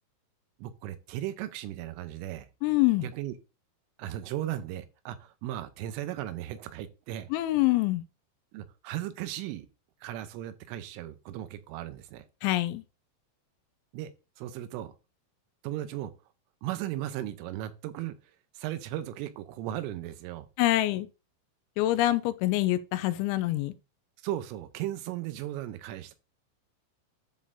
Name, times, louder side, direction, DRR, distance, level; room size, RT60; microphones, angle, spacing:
voice 1, 0.6-2.5 3.0-3.3 4.0-7.3 8.5-9.7 10.0-12.2 13.9-14.9 15.6-16.1 16.6-18.1 18.6-20.5 24.2-26.1, right 13 dB, 85° right, 3.3 m, -36 dB
voice 2, 2.6-3.1 7.3-8.0 12.4-12.8 20.6-21.1 21.8-23.7, left 16 dB, 85° left, 2.8 m, -25 dB
10.5 x 6.4 x 2.6 m
omnidirectional pair, 5.6 m